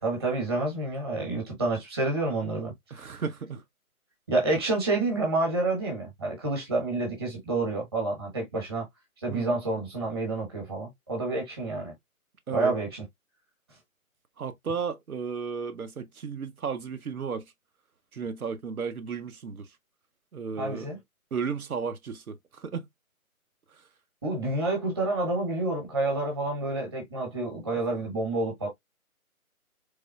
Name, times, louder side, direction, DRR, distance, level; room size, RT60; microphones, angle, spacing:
voice 1, 0.0-3.2 4.3-8.9 9.2-11.9 12.5-13.0 20.6-21.0 24.2-28.7, right 2 dB, 15° right, 1.1 m, -29 dB
voice 2, 2.9-3.6 9.3-9.6 12.5-12.7 14.4-17.5 18.1-19.7 20.3-20.9 21.3-22.9, right 6 dB, 75° right, 0.8 m, -34 dB
3.6 x 3.3 x 2.2 m
figure-of-eight pair, 170°, 43 cm